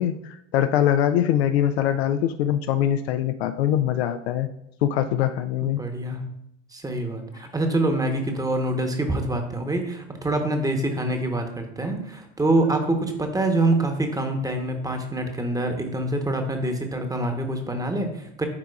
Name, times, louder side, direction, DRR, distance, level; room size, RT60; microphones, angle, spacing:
voice 1, 0.0-4.5 4.8-5.8, left 10 dB, 60° left, 9 dB, 0.5 m, -23 dB
voice 2, 5.6-6.2 6.7-18.5, right 2 dB, 10° right, 5 dB, 1.0 m, -25 dB
12.0 x 4.6 x 2.4 m, 0.79 s
figure-of-eight pair, 70°, 37 cm